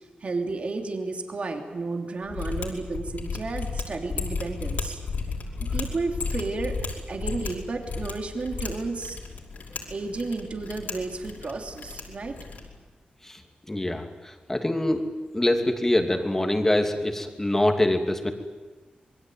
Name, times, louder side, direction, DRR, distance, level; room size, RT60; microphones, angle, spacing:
voice 1, 0.2-5.0 5.6-6.8 7.1-9.2 9.9-12.4, right 3 dB, 45° right, 3 dB, 3.1 m, -32 dB
Mechanisms, 2.3-12.8, left 4 dB, 70° left, 5.3 m, -34 dB
voice 2, 13.7-15.1 15.3-18.3, left 1 dB, 15° left, 4 dB, 2.7 m, -24 dB
26.5 x 22.5 x 9.3 m, 1.3 s
wide cardioid pair, 140°, 3 cm